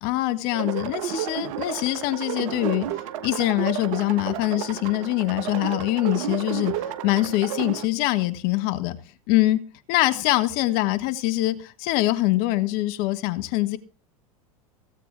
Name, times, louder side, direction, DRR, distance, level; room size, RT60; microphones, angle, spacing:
voice 1, 0.0-2.9 3.2-9.0 9.3-13.8, left 17 dB, 55° left, 1.3 m, -24 dB
sound 1, 0.5-7.9, right 11 dB, 60° right, 1.1 m, -32 dB
16.5 x 8.3 x 4.5 m
figure-of-eight pair, 80°, 19 cm